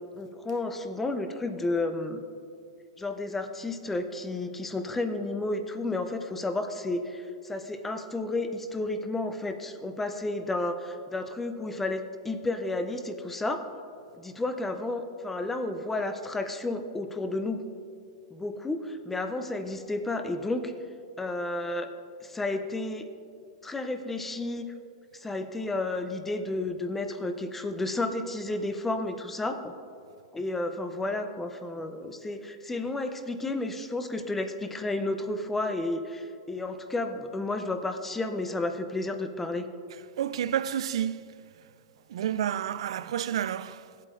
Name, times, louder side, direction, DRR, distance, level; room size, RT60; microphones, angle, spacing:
voice 1, 0.0-2.2 3.0-13.6 14.1-17.6 18.3-20.7 21.2-21.9 22.2-23.1 23.6-24.7 25.1-29.7 30.3-39.7, left 2 dB, 5° left, 0.5 m, -32 dB
voice 2, 39.9-41.7 42.1-44.0, right 10 dB, 75° right, 0.3 m, -31 dB
16.0 x 8.2 x 2.5 m
supercardioid pair, 160°, 3 cm